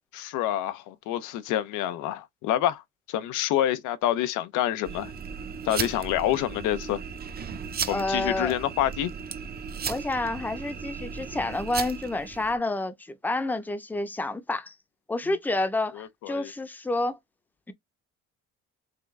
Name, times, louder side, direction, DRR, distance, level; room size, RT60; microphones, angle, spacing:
voice 1, 0.1-2.8 3.1-5.1 5.7-7.0 7.9-9.1 16.0-16.5, left 12 dB, 90° left, 0.7 m, -27 dB
sound 1, 4.8-12.6, right 6 dB, 30° right, 0.7 m, -36 dB
voice 2, 7.9-8.6 9.9-12.9 13.2-14.7 15.1-17.2, left 2 dB, 5° left, 0.6 m, -29 dB
3.8 x 3.4 x 3.2 m
cardioid pair, 120°, 30 cm